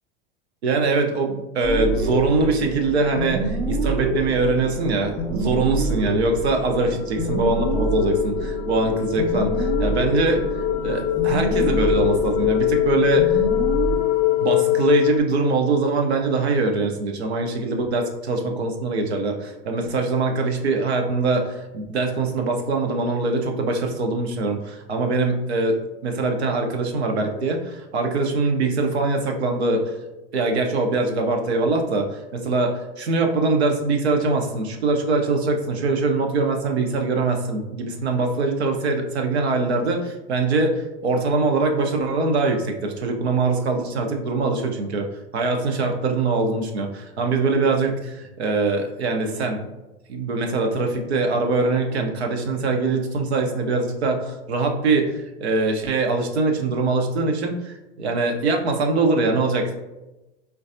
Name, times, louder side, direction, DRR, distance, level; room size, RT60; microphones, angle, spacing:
voice 1, 0.6-13.4 14.4-29.9 30.3-45.1 45.3-49.6 50.1-59.8, right 3 dB, 85° right, 3 dB, 0.6 m, -23 dB
sound 1, 1.6-14.0, right 2 dB, 10° left, 0.6 m, -27 dB
sound 2, 5.6-15.2, left 15 dB, 60° left, 0.4 m, -24 dB
3.9 x 2.2 x 2.5 m, 1.0 s
hypercardioid pair, 95°, 32 cm